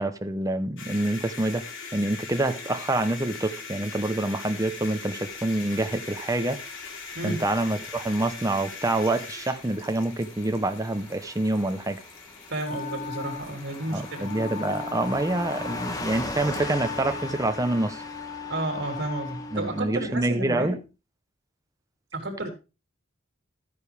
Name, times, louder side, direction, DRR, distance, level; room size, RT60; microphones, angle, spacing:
voice 1, 0.0-1.6 1.9-6.6 7.2-12.0 13.9-18.0 19.5-20.8, right 2 dB, 15° right, 0.7 m, -26 dB
sound 1, 0.8-16.6, left 4 dB, 70° left, 2.7 m, -41 dB
Car passing by / Truck, 5.5-19.8, left 2 dB, 20° left, 1.3 m, -41 dB
voice 2, 12.5-14.3 18.5-20.8 22.1-22.5, right 2 dB, 55° right, 3.3 m, -31 dB
Wind instrument woodwind instrument, 12.6-20.1, left 5 dB, 40° left, 1.0 m, -38 dB
13.0 x 9.6 x 3.4 m
head